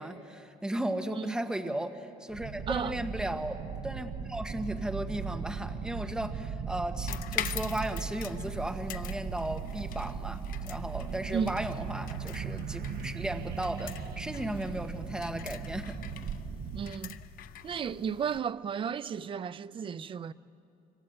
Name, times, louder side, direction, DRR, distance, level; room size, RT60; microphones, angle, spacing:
voice 1, 0.0-16.0, right 1 dB, 5° right, 1.3 m, -35 dB
sound 1, 2.3-16.9, right 6 dB, 50° right, 1.1 m, -38 dB
sound 2, 7.1-18.4, left 11 dB, 65° left, 0.8 m, -43 dB
sound 3, 10.6-15.6, right 6 dB, 90° right, 1.0 m, -44 dB
voice 2, 16.7-17.2 17.6-20.3, right 7 dB, 35° right, 0.6 m, -33 dB
26.0 x 25.5 x 8.0 m
cardioid pair, 145°, 15 cm